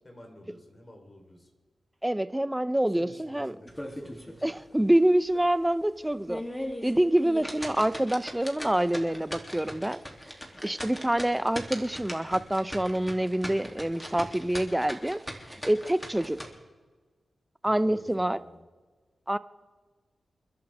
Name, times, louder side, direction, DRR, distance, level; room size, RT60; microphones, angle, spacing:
voice 1, 0.0-1.5 3.0-4.6 17.6-18.7, left 1 dB, 35° left, 2 dB, 3.9 m, -51 dB
voice 2, 2.0-3.5 4.4-6.4 6.8-10.0 10.6-15.2 15.5-16.5 17.6-18.4 19.3-19.4, right 1 dB, 10° right, 14 dB, 0.7 m, -26 dB
sound 1, 3.7-4.4 4.8-4.9 5.4-5.5 6.1-16.5, equal, 10° left, 3.0 m, -39 dB
29.5 x 11.5 x 3.6 m, 1.4 s
cardioid pair, 60°, 0 cm